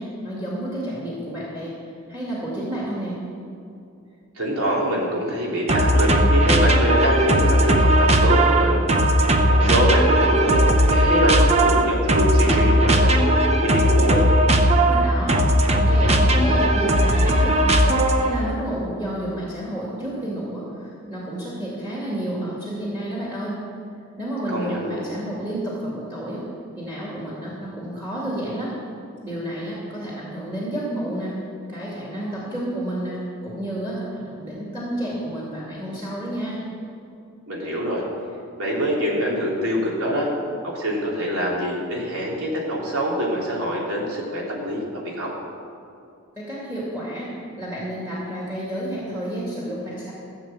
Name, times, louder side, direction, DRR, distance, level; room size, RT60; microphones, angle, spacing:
voice 1, 0.0-1.7 2.1-3.1 14.9-15.4 15.7-23.6 24.2-26.4 26.8-28.8 29.2-31.4 31.7-36.6 46.4-47.3 47.6-50.1, right 1 dB, 10° right, -6 dB, 2.5 m, -30 dB
voice 2, 4.4-8.8 9.5-14.2 24.5-25.1 37.5-38.0 38.6-40.3 40.6-45.3, equal, 85° right, -3 dB, 3.5 m, -24 dB
sound 1, 5.7-18.4, right 1 dB, 30° right, 0.8 m, -17 dB
15.5 x 7.3 x 7.7 m, 2.6 s
head